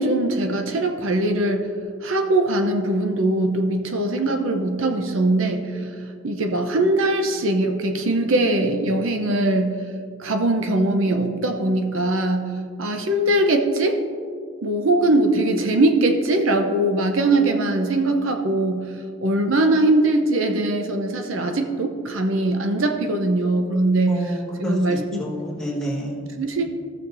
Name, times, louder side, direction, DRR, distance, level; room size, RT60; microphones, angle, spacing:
voice 1, 0.0-1.7 2.0-5.9 6.2-9.8 10.2-12.5 12.8-14.0 14.6-18.9 19.2-25.2 26.4-26.6, right 2 dB, 75° right, 4 dB, 0.7 m, -21 dB
voice 2, 24.1-26.2, equal, 5° left, -6 dB, 1.5 m, -28 dB
15.0 x 6.5 x 2.6 m, 2.2 s
head